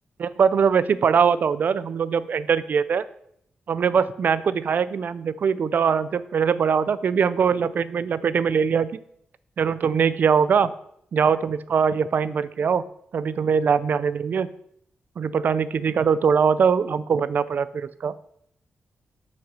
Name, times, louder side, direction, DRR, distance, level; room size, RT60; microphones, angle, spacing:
voice 1, 0.2-3.0 3.7-8.9 9.6-10.7 11.1-12.8 13.1-14.5 15.2-18.2, right 6 dB, 55° right, 16 dB, 0.4 m, -22 dB
7.4 x 5.8 x 6.7 m, 0.72 s
wide cardioid pair, 160°, 4 cm